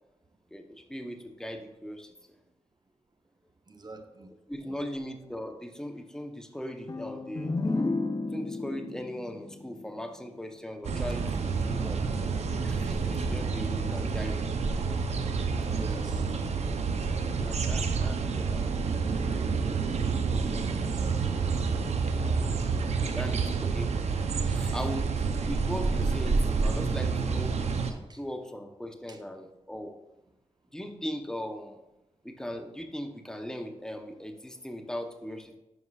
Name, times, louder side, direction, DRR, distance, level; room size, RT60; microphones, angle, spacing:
voice 1, 0.5-2.3 4.5-7.9 8.3-12.0 12.6-14.5 17.4-18.6 23.0-23.9 24.4-27.6 28.1-29.9 30.7-31.8 32.2-35.6, equal, 5° left, 5 dB, 0.8 m, -39 dB
voice 2, 3.7-4.3 15.6-16.2 20.8-21.4 28.1-28.2 29.1-29.2, right 3 dB, 40° right, 6 dB, 0.8 m, -44 dB
sound 1, 6.9-10.6, left 3 dB, 35° left, 0.5 m, -33 dB
sound 2, 10.8-27.9, right 4 dB, 70° right, 0.6 m, -28 dB
9.5 x 5.4 x 2.4 m, 0.96 s
cardioid pair, 55°, 11 cm